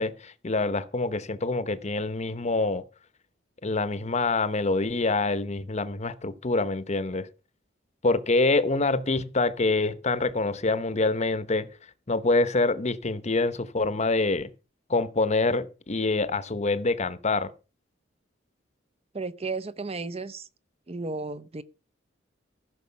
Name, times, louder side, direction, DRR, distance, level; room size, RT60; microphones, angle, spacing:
voice 1, 0.0-2.8 3.6-7.3 8.0-11.7 12.1-14.5 14.9-17.5, left 3 dB, 35° left, 0.9 m, -26 dB
voice 2, 19.1-20.5 20.9-21.6, right 3 dB, 30° right, 0.7 m, -33 dB
15.0 x 6.3 x 5.8 m
head